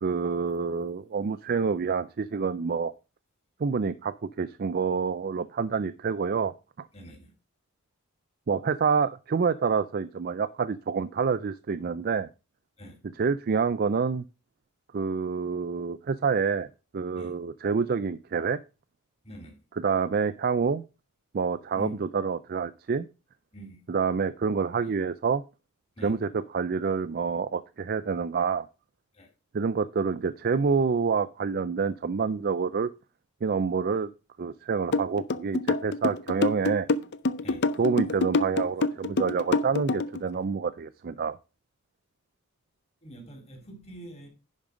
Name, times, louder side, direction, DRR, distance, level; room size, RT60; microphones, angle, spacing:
voice 1, 0.0-2.9 3.6-6.9 8.5-12.3 13.2-14.2 14.9-16.7 16.9-18.6 19.8-20.8 21.3-23.1 23.9-25.4 26.0-28.7 29.5-32.9 33.4-34.1 34.4-36.9 37.8-41.4, right 5 dB, 45° right, 0.4 m, -27 dB
voice 2, 6.9-7.3 12.8-13.0 17.1-17.3 19.2-19.6 21.7-22.0 23.5-23.8 24.8-24.9 26.0-26.1 29.1-29.3 37.4-37.7 43.0-44.3, equal, 30° left, 2.8 m, -44 dB
sound 1, 34.9-40.2, left 3 dB, 50° left, 0.5 m, -26 dB
10.5 x 5.3 x 4.9 m
head